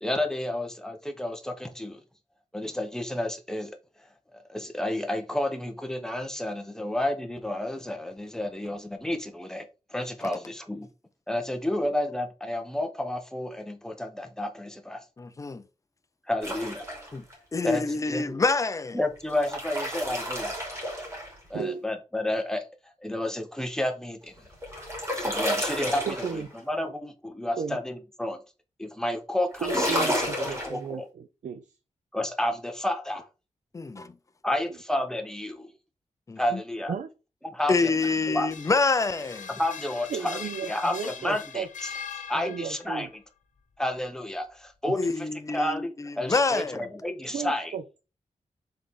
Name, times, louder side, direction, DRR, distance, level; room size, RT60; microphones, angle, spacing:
voice 1, 0.0-2.0 2.5-3.8 4.3-10.9 11.3-15.0 16.3-16.9 17.6-18.4 18.9-20.5 21.5-22.6 23.0-24.3 25.2-28.4 28.8-31.1 32.1-33.3 34.4-35.7 36.4-36.9 37.5-37.9 38.3-38.5 39.5-41.9 42.3-43.2 43.8-47.7, left 1 dB, 5° left, 0.9 m, -31 dB
voice 2, 15.2-15.6 17.1-17.2 17.5-19.0 33.7-34.1 36.3-36.4 37.7-39.5 45.0-45.9 46.3-46.8, left 3 dB, 25° left, 0.5 m, -26 dB
sound 1, 16.4-17.3 19.2-21.6 24.3-26.6 29.5-30.7, equal, 20° right, 2.8 m, -31 dB
voice 3, 26.1-26.5 27.6-27.8 29.6-31.6 36.9-37.1 40.1-41.7 42.3-43.1 47.3-48.0, right 6 dB, 80° right, 0.5 m, -34 dB
sound 2, 37.8-42.9, left 7 dB, 90° left, 1.0 m, -41 dB
6.9 x 3.9 x 3.7 m
wide cardioid pair, 165°, 13 cm